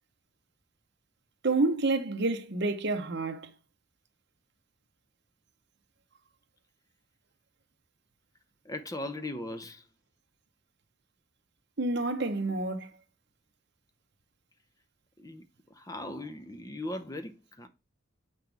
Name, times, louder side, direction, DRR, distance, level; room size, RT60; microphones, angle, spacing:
voice 1, 1.4-3.5 11.8-12.9, right 2 dB, 55° right, 0.9 m, -28 dB
voice 2, 8.6-9.9 15.2-17.7, left 1 dB, 15° left, 0.6 m, -39 dB
7.2 x 5.7 x 3.4 m
head